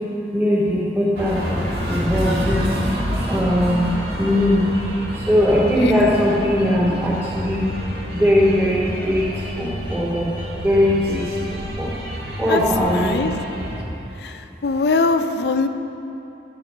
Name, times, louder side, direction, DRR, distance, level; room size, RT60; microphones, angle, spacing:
voice 1, 0.3-2.7 3.3-3.9 4.2-4.7 5.1-7.7 8.1-9.3 9.6-10.3 10.6-11.9 12.4-13.2, left 1 dB, 10° right, -10 dB, 2.5 m, -20 dB
sound 1, 1.2-13.8, equal, 60° right, 1.6 m, -28 dB
voice 2, 5.8-6.2 12.5-12.6 12.9-13.4 14.2-15.7, left 3 dB, 65° left, 8 dB, 0.5 m, -22 dB
12.5 x 8.9 x 4.4 m, 2.9 s
head